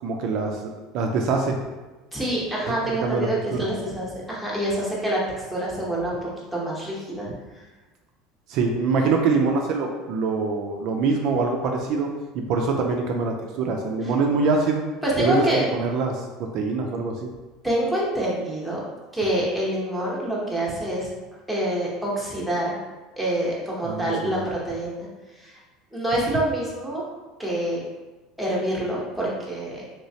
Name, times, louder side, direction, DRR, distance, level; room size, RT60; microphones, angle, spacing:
voice 1, 0.0-1.6 2.7-3.6 8.5-12.1 12.3-14.8 15.2-16.2 16.5-17.3 23.8-24.5, right 4 dB, 55° right, 2 dB, 0.3 m, -24 dB
voice 2, 2.1-5.2 5.5-7.3 14.0-14.1 15.0-15.7 17.6-18.8 19.1-21.1 21.5-22.8 23.2-25.1 25.4-25.6 25.9-27.0 27.4-27.8 28.4-29.8, right 1 dB, ahead, -6 dB, 0.8 m, -26 dB
3.1 x 3.1 x 2.7 m, 1.2 s
cardioid pair, 150°, 0 cm